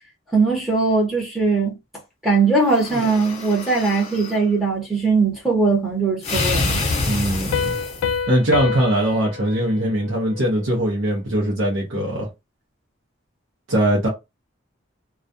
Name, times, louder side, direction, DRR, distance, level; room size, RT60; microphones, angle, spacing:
voice 1, 0.3-1.8 2.2-6.8, right 4 dB, ahead, 0.8 m, -20 dB
sound 1, 2.6-4.4 6.2-8.2, left 2 dB, 30° left, 0.7 m, -26 dB
voice 2, 7.1-7.8 8.3-12.3 13.7-14.1, right 1 dB, 70° right, 0.7 m, -21 dB
Piano, 7.5-10.9, left 7 dB, 85° left, 0.3 m, -28 dB
2.3 x 2.2 x 2.6 m
head